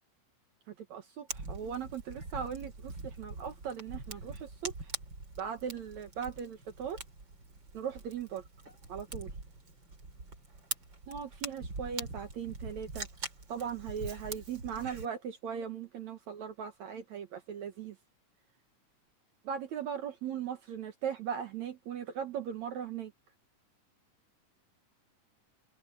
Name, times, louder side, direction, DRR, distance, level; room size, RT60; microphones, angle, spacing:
voice 1, 0.7-4.9 5.4-7.0 7.7-8.4 8.9-9.3 11.1-13.1 13.5-18.0 19.4-23.1, right 8 dB, 65° right, 2.4 m, -39 dB
Fire, 1.3-15.1, right 3 dB, 35° right, 4.9 m, -43 dB
open air
omnidirectional pair, 3.8 m